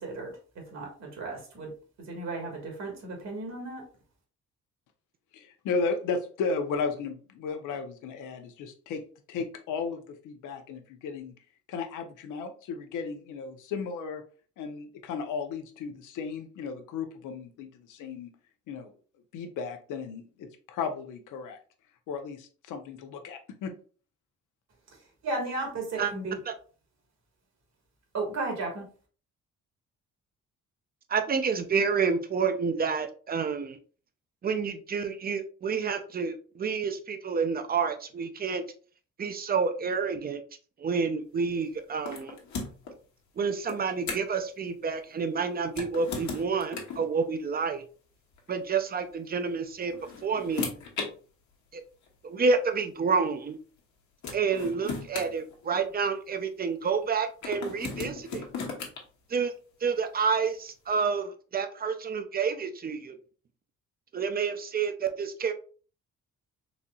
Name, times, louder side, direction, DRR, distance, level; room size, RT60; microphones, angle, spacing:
voice 1, 0.0-1.7 2.0-3.8 25.2-26.4 28.1-28.8, right 3 dB, 65° right, 1 dB, 1.5 m, -34 dB
voice 2, 5.3-9.0 9.3-11.3 11.7-14.2 14.6-18.3 18.7-18.9 19.3-21.6 22.1-23.7, left 4 dB, 85° left, 6 dB, 0.7 m, -34 dB
voice 3, 31.1-33.8 34.4-38.6 39.2-40.4 40.8-42.4 43.4-47.8 48.5-49.9 50.2-50.7 51.7-51.8 52.2-53.6 54.3-58.5 59.3-59.5 59.8-63.2 64.1-65.5, right 5 dB, 30° right, 8 dB, 0.5 m, -29 dB
sound 1, 42.0-42.9 43.7-44.4 45.7-47.1 48.3-48.5 49.7-51.1 52.1-52.2 53.8-53.9 54.2-56.1 57.4-59.0, left 4 dB, 70° left, 1.1 m, -36 dB
4.0 x 2.8 x 2.3 m, 0.40 s
cardioid pair, 90°, 30 cm